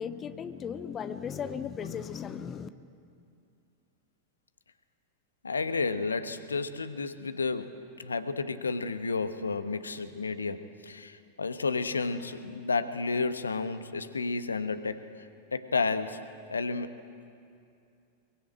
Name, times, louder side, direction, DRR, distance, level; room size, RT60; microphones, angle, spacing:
voice 1, 0.0-2.7, left 7 dB, 25° left, 1.0 m, -36 dB
voice 2, 5.4-15.1 15.5-16.2 16.5-17.0, left 4 dB, 75° left, 1.1 m, -31 dB
23.5 x 23.0 x 8.7 m
figure-of-eight pair, 90°, 0 cm